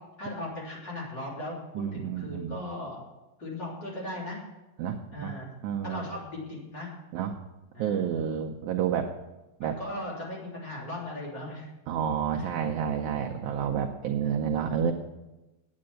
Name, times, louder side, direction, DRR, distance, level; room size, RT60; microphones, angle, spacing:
voice 1, 0.2-1.5 1.9-3.0 3.4-4.4 5.1-5.5 5.8-6.9 7.7-8.0 9.6-11.7 12.4-12.5 13.0-13.3 14.2-14.4, left 1 dB, 30° left, -4 dB, 3.8 m, -38 dB
voice 2, 1.7-2.6 4.8-5.3 5.6-6.0 7.1-7.4 7.8-9.1 9.6-9.8 11.9-14.9, right 8 dB, 80° right, 2 dB, 1.7 m, -29 dB
9.5 x 8.7 x 7.6 m, 1.0 s
omnidirectional pair, 4.2 m